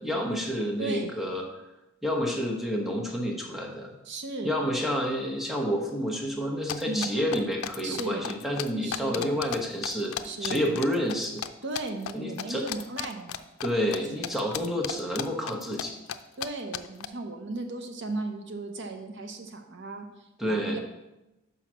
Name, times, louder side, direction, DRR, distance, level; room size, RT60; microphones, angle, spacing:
voice 1, 0.0-1.4 2.0-3.9 4.4-11.4 12.1-12.7 13.6-16.0 20.4-20.8, equal, ahead, 0 dB, 1.1 m, -29 dB
voice 2, 0.8-1.3 4.0-4.6 6.9-7.1 7.8-8.3 8.8-9.4 10.2-10.8 11.6-13.4 16.4-20.8, right 2 dB, 60° right, 5 dB, 0.7 m, -36 dB
sound 1, 6.7-9.6 9.8-11.5 11.7-12.1 12.4-14.0 14.2-15.8 16.1-16.2 16.4-16.5 16.7-17.1, left 10 dB, 85° left, 0.5 m, -34 dB
5.9 x 5.6 x 6.2 m, 0.95 s
head